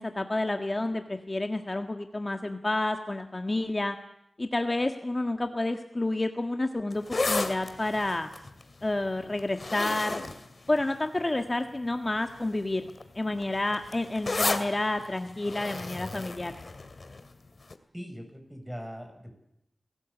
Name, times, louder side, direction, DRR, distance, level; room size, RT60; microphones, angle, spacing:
voice 1, 0.0-4.0 4.4-8.3 8.8-10.2 10.7-12.9 13.1-16.6, left 2 dB, 35° left, 6 dB, 1.7 m, -29 dB
sound 1, 6.9-11.4 12.1-12.4 12.7-17.3 17.7-17.8, left 3 dB, 55° left, 2.3 m, -33 dB
voice 2, 17.9-19.4, equal, 10° right, 4 dB, 7.1 m, -41 dB
28.5 x 18.5 x 8.5 m, 0.82 s
wide cardioid pair, 55°, 0 cm